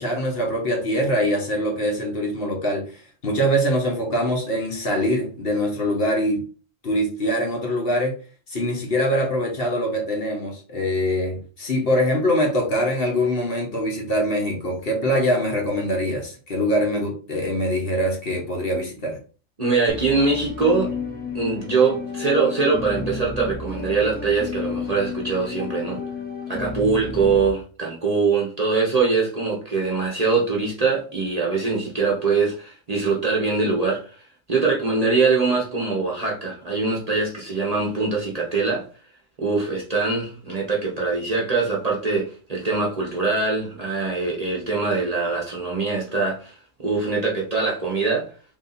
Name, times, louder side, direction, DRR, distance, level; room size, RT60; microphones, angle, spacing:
voice 1, 0.0-6.4 6.8-8.2 8.5-19.2, equal, 50° left, 0 dB, 1.2 m, -23 dB
voice 2, 19.6-20.9 21.3-26.0 26.5-34.2 34.5-38.9 39.4-48.3, right 4 dB, 35° right, -3 dB, 0.8 m, -23 dB
sound 1, 19.9-27.5, left 4 dB, 10° left, 0.5 m, -32 dB
3.4 x 2.6 x 4.0 m, 0.38 s
omnidirectional pair, 1.3 m